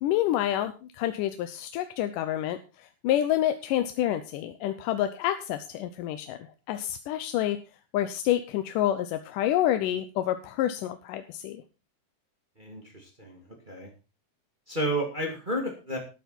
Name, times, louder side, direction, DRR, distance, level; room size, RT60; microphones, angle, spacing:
voice 1, 0.0-2.6 3.0-6.4 6.7-7.6 7.9-11.6, left 12 dB, 85° left, 9 dB, 2.3 m, -28 dB
voice 2, 12.6-13.9 14.7-16.0, right 1 dB, 15° right, 2 dB, 1.9 m, -32 dB
13.5 x 9.3 x 4.4 m, 0.31 s
omnidirectional pair, 3.7 m